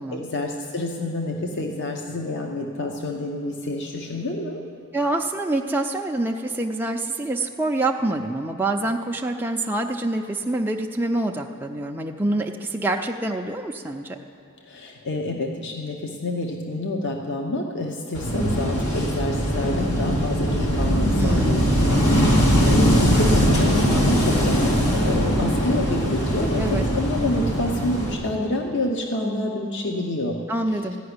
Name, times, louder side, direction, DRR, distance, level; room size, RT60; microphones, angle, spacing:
voice 1, 0.1-4.6 14.6-30.4 30.7-30.8, left 1 dB, 50° left, 2 dB, 0.8 m, -28 dB
voice 2, 4.9-14.2 21.2-21.7 26.5-26.8 30.5-31.0, right 2 dB, 10° right, 1 dB, 0.4 m, -26 dB
Wind / Waves surf, 18.1-28.1, equal, 85° left, 1.9 m, -21 dB
14.0 x 5.8 x 9.5 m, 2.7 s
head